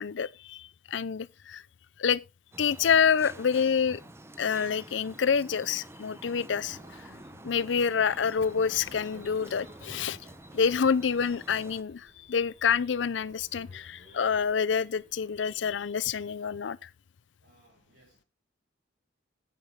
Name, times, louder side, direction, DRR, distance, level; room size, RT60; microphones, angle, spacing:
voice 1, 0.0-1.6 2.0-2.2 2.6-4.0 4.4-6.8 7.4-10.2 10.5-16.9, left 6 dB, 75° left, 0.5 m, -27 dB
sound 1, 2.5-11.8, right 1 dB, 15° right, 0.7 m, -48 dB
sound 2, 6.5-15.8, equal, 65° right, 5.3 m, -57 dB
voice 2, 17.4-18.3, right 1 dB, 85° right, 4.1 m, -63 dB
9.4 x 8.8 x 3.5 m
head